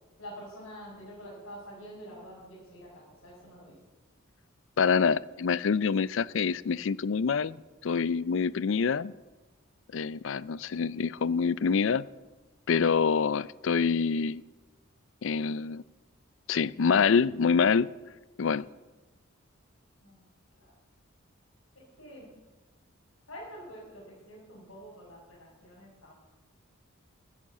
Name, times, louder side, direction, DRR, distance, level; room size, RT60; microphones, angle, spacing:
voice 1, 0.2-3.7 20.0-20.2 20.6-20.7 22.0-22.3 23.3-26.1, equal, 85° left, 5.3 m, -47 dB
voice 2, 4.8-7.6 7.8-9.1 9.9-12.1 12.7-14.4 15.2-15.8 16.5-17.9 18.4-18.7, left 5 dB, 65° left, 0.4 m, -26 dB
14.0 x 10.0 x 7.6 m
head